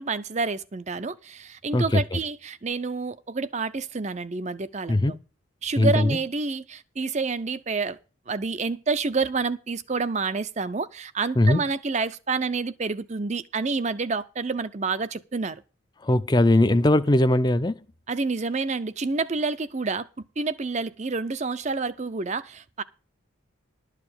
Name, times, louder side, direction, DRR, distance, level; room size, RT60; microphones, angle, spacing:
voice 1, 0.0-5.2 5.6-8.0 8.3-15.6 18.1-20.1 20.4-22.8, right 4 dB, 35° right, 0.6 m, -28 dB
voice 2, 1.7-2.2 4.9-5.1 5.8-6.2 11.4-11.6 16.0-17.8, left 1 dB, 20° left, 0.5 m, -20 dB
12.0 x 4.9 x 8.7 m
head